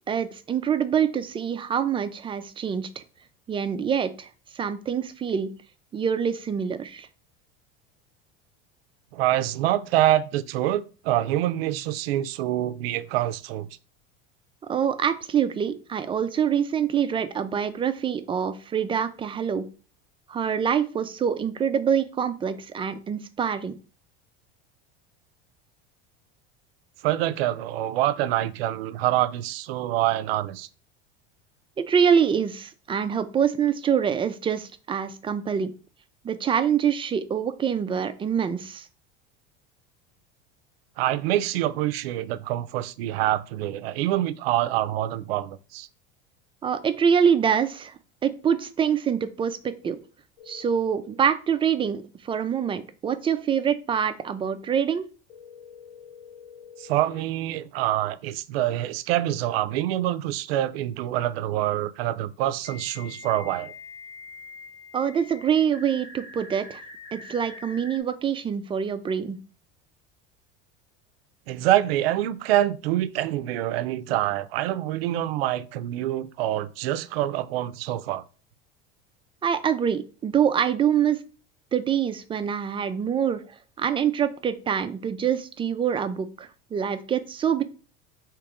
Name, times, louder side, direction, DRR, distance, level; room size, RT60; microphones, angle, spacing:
voice 1, 0.1-3.0 3.5-4.3 4.5-5.5 5.9-7.1 14.7-19.7 20.3-23.7 31.8-35.7 36.2-38.9 46.6-50.0 50.5-55.0 64.9-66.8 67.1-69.4 79.4-81.2 81.7-83.4 83.8-87.6, right 8 dB, 20° right, 0.3 m, -25 dB
voice 2, 9.1-13.7 27.0-30.7 41.0-45.9 56.8-63.7 71.5-78.2, right 13 dB, 90° right, 0.4 m, -26 dB
sound 1, 50.4-51.2 55.3-57.2 59.9-60.0 62.6-68.0, left 4 dB, 25° left, 0.8 m, -45 dB
3.5 x 3.0 x 4.8 m
supercardioid pair, 115°, 29 cm